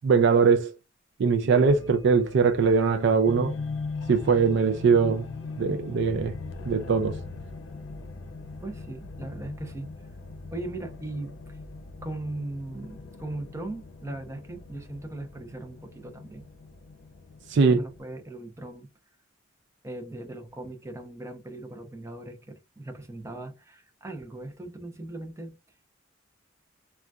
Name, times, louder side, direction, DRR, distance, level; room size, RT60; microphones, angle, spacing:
voice 1, 0.0-0.7 1.2-3.5 4.1-5.3 5.6-6.3 6.7-7.2 17.5-17.8, right 5 dB, 60° right, 0.4 m, -21 dB
sound 1, 1.7-18.0, left 4 dB, 70° left, 0.6 m, -40 dB
voice 2, 8.6-9.9 10.5-11.6 12.0-16.4 17.7-18.9 19.8-25.5, right 2 dB, 15° right, 0.6 m, -38 dB
3.8 x 2.3 x 2.3 m
head